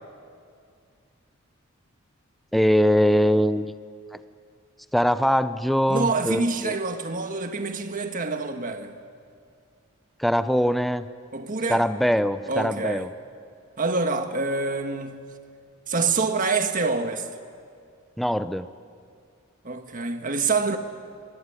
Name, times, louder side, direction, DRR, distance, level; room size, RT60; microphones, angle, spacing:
voice 1, 2.5-3.7 4.1-4.2 4.9-6.8 10.2-11.1 11.7-13.1 18.2-18.7, equal, ahead, 0.6 m, -22 dB
voice 2, 5.9-8.9 11.3-11.8 12.5-13.1 13.8-15.2 15.9-17.3 19.6-20.8, right 3 dB, 40° right, 1.5 m, -26 dB
24.5 x 19.0 x 9.9 m
head